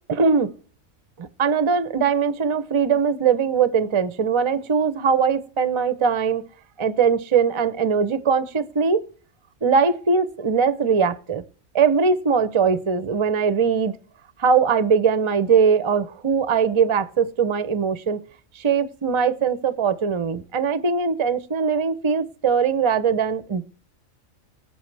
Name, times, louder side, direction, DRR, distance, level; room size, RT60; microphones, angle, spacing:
voice 1, 0.1-0.5 1.2-6.5 6.8-9.1 9.6-11.4 11.7-13.9 14.4-18.2 18.5-23.6, right 6 dB, 35° right, 0.5 m, -21 dB
19.0 x 8.2 x 3.3 m
omnidirectional pair, 1.4 m